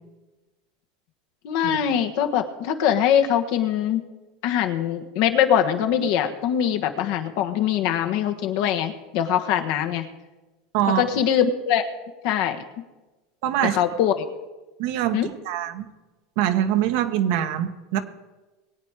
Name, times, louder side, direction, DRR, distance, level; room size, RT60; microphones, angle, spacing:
voice 1, 1.4-4.0 4.4-10.1 10.9-11.8 12.2-12.6 13.6-14.3 15.1-15.3, left 9 dB, 65° left, 7 dB, 1.4 m, -22 dB
voice 2, 13.4-13.8 14.8-15.8 16.4-18.0, right 11 dB, 65° right, 8 dB, 1.3 m, -24 dB
21.0 x 8.8 x 4.9 m, 1.2 s
supercardioid pair, 115°, 0 cm